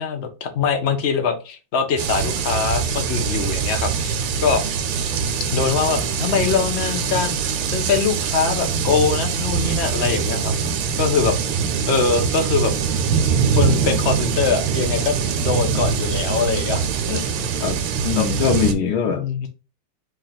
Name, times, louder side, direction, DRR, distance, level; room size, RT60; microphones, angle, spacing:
voice 1, 0.0-4.6 5.5-10.5 11.0-11.4 11.9-12.7 13.5-17.6 18.1-18.3 19.1-19.5, left 5 dB, 55° left, 0.7 m, -23 dB
sound 1, 2.0-18.7, right 6 dB, 80° right, 1.7 m, -23 dB
voice 2, 18.0-19.2, left 7 dB, 85° left, 1.7 m, -21 dB
3.9 x 3.1 x 4.0 m
omnidirectional pair, 2.4 m